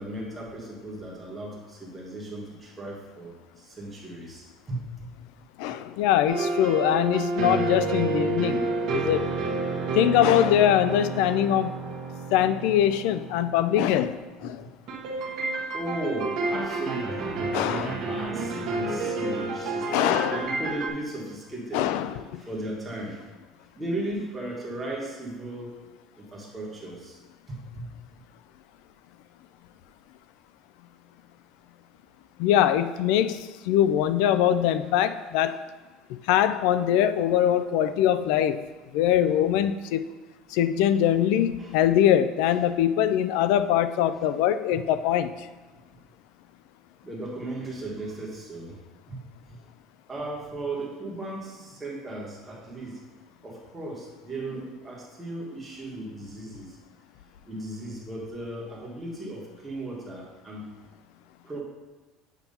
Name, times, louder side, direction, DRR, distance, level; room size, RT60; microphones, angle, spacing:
voice 1, 0.0-5.1 14.4-14.7 15.7-22.0 22.4-23.2 23.8-25.7 26.2-27.2 27.5-27.9 41.6-41.7 44.7-44.8 47.0-48.8 49.1-49.2 49.5-49.7 50.1-53.0 53.4-56.8 57.5-60.7 61.4-61.6, right 1 dB, 15° right, -4 dB, 1.4 m, -36 dB
voice 2, 5.6-9.3 10.0-11.8 12.3-14.6 17.5-17.9 19.9-20.4 21.7-22.2 32.4-35.6 36.1-38.6 38.9-40.0 40.5-45.3, left 10 dB, 70° left, 12 dB, 0.3 m, -23 dB
sound 1, 6.3-14.0 14.9-20.9, right 3 dB, 50° right, 1.1 m, -30 dB
7.9 x 3.0 x 5.3 m, 1.3 s
cardioid pair, 160°, 0 cm